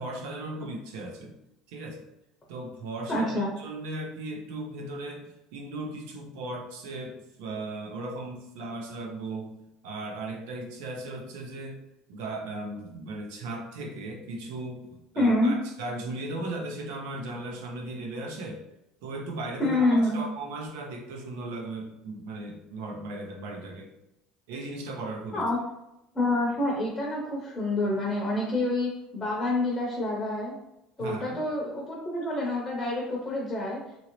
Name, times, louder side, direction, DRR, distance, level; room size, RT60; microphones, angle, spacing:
voice 1, 0.0-1.3 1.7-2.0 2.5-9.5 9.8-11.8 12.1-18.6 19.0-23.9 24.5-25.5 31.0-31.4, right 2 dB, 85° right, 1 dB, 0.7 m, -37 dB
voice 2, 3.1-3.5 15.2-15.5 19.6-20.2 25.3-25.6 26.1-30.5 31.0-33.8, left 1 dB, 15° left, -4 dB, 0.7 m, -27 dB
2.9 x 2.7 x 3.0 m, 0.86 s
cardioid pair, 170°, 0 cm